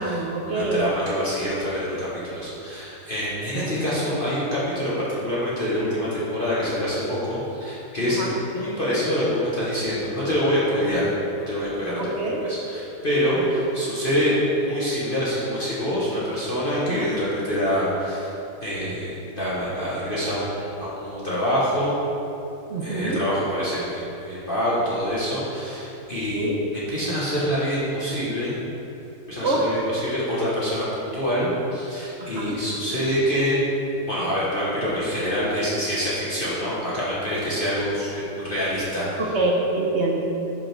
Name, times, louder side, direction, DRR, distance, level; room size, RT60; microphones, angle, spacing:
voice 1, 0.0-0.9 3.5-3.7 8.1-8.3 12.0-12.4 13.5-13.6 16.9-17.1 22.7-23.2 26.3-26.6 29.4-29.6 32.2-32.6 39.2-40.2, right 2 dB, 50° right, -2 dB, 0.9 m, -25 dB
voice 2, 0.5-8.2 8.5-11.1 11.5-12.2 12.5-18.3 18.6-21.9 22.8-28.6 29.3-33.6 34.1-39.2, equal, 35° left, -9 dB, 1.3 m, -26 dB
5.6 x 5.5 x 5.9 m, 2.9 s
omnidirectional pair, 1.8 m